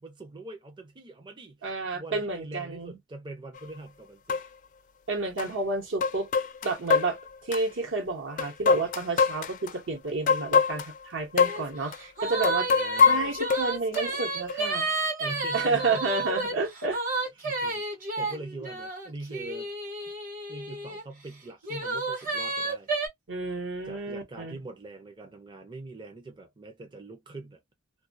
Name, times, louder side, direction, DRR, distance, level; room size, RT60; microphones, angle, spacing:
voice 1, 0.0-4.4 12.7-13.3 15.2-16.3 17.4-19.7 20.5-22.9 23.9-27.6, right 2 dB, 25° right, 0.5 m, -43 dB
voice 2, 1.6-3.0 5.1-6.3 6.6-12.7 13.0-14.9 15.5-17.0 23.3-24.6, right 3 dB, 65° right, 1.0 m, -30 dB
sound 1, 3.6-3.7 4.3-4.5 5.4-5.5 6.0-7.6 8.4-9.7 10.3-11.0 11.4-11.6 11.9-12.0 12.4-14.0 14.5-14.6, left 5 dB, 40° left, 0.3 m, -24 dB
sound 2, 11.4-11.6 11.9-21.0 21.6-23.1, right 3 dB, 40° right, 1.1 m, -31 dB
2.3 x 2.2 x 2.5 m
head